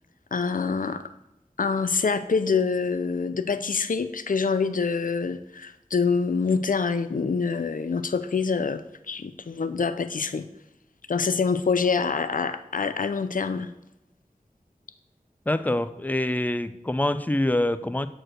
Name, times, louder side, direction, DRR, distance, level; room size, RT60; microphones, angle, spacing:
voice 1, 0.3-1.0 1.6-8.8 9.1-10.4 11.1-13.7, left 5 dB, 65° left, 12 dB, 0.5 m, -25 dB
voice 2, 15.5-18.1, left 1 dB, 10° left, 12 dB, 0.4 m, -25 dB
6.5 x 4.5 x 6.1 m, 0.91 s
wide cardioid pair, 50°, 15 cm